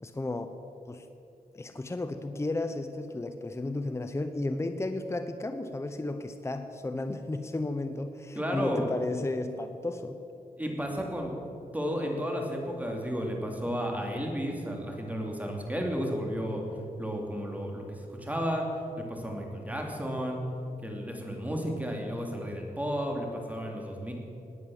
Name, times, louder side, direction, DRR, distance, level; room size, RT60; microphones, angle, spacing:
voice 1, 0.0-0.5 0.9-1.1 1.5-10.2, left 2 dB, 15° left, 8 dB, 0.8 m, -33 dB
voice 2, 8.4-8.9 10.6-11.3 11.7-16.6 17.0-18.7 19.0-20.4 20.8-24.1, equal, 10° right, 1 dB, 2.7 m, -33 dB
18.0 x 9.4 x 7.1 m, 2.7 s
wide cardioid pair, 95°, 15 cm